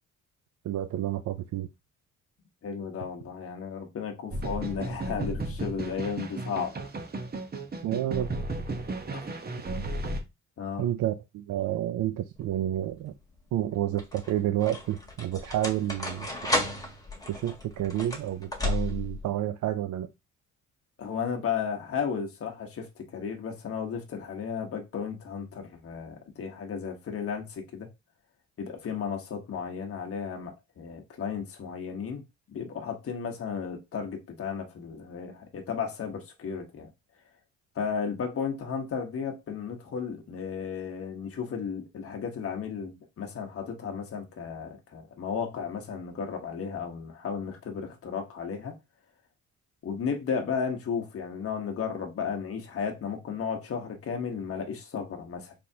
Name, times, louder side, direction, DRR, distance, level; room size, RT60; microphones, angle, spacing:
voice 1, 0.6-1.7 7.8-8.3 9.7-9.9 10.8-13.1 13.5-16.3 17.3-20.1, right 12 dB, 75° right, 0.5 m, -30 dB
voice 2, 2.6-6.7 9.1-9.2 10.6-10.9 21.0-27.9 28.6-32.2 32.5-36.9 37.7-48.8 49.8-55.5, left 6 dB, 50° left, 1.2 m, -34 dB
sound 1, 4.3-10.2, right 2 dB, 30° right, 1.0 m, -34 dB
sound 2, 12.4-12.9 13.7-19.2, left 2 dB, 10° left, 1.5 m, -33 dB
4.2 x 3.4 x 2.8 m
cardioid pair, 90°, 30 cm